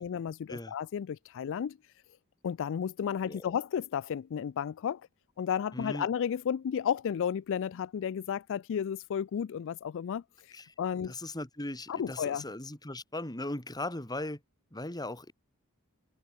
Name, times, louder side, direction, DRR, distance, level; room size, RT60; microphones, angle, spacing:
voice 1, 0.0-1.8 2.4-5.0 5.4-11.2 11.9-12.4, left 8 dB, 60° left, 0.3 m, -33 dB
voice 2, 5.7-6.1 10.5-10.7 11.1-14.4 14.7-15.3, left 2 dB, 20° left, 2.5 m, -38 dB
head